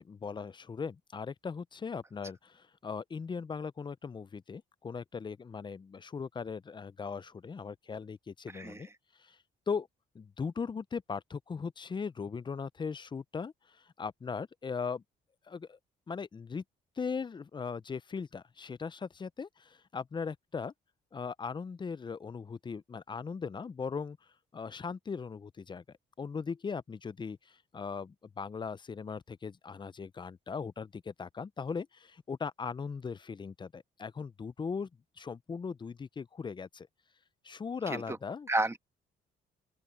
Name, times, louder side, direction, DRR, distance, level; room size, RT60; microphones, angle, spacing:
voice 1, 0.0-8.9 9.2-9.4 9.7-9.9 10.1-15.0 15.5-15.8 16.1-16.6 17.0-20.7 21.1-24.2 24.5-25.8 26.2-34.9 35.2-36.9 37.4-38.5, left 5 dB, 25° left, 0.4 m, -39 dB
voice 2, 38.5-38.8, right 2 dB, 15° right, 1.2 m, -31 dB
open air
cardioid pair, 90°, 20 cm